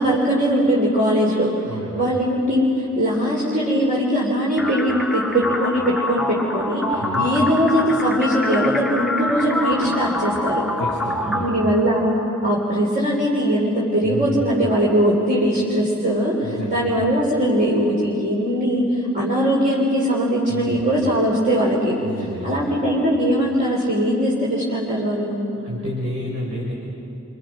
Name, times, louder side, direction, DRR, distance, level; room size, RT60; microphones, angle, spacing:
voice 1, 0.0-1.5 1.9-10.6 11.3-12.1 12.4-16.4 16.7-18.8 19.1-22.0 22.4-25.4, equal, 35° right, -6 dB, 4.1 m, -20 dB
voice 2, 1.7-2.0 7.0-7.2 10.8-11.5 14.0-14.4 16.4-16.8 20.5-20.8 22.0-22.7 25.6-26.7, right 1 dB, 65° right, -5 dB, 5.1 m, -30 dB
sound 1, 4.6-12.5, left 1 dB, ahead, 1.2 m, -26 dB
29.5 x 26.5 x 6.1 m, 2.8 s
head